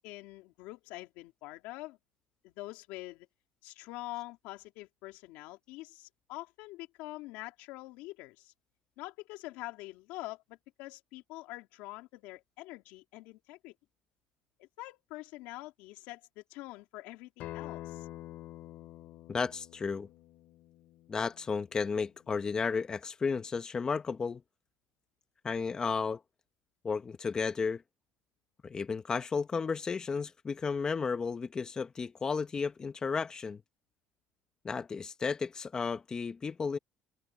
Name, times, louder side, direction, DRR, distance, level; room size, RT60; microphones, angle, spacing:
voice 1, 0.0-2.0 2.4-3.3 3.6-8.5 9.0-13.7 14.6-18.1, left 19 dB, 85° left, 3.1 m, -45 dB
Acoustic guitar, 17.4-22.6, left 15 dB, 70° left, 4.2 m, -48 dB
voice 2, 19.3-20.1 21.1-24.4 25.4-26.2 26.8-27.8 28.6-33.6 34.6-36.8, left 5 dB, 30° left, 1.1 m, -33 dB
cardioid pair, 110°, 3 cm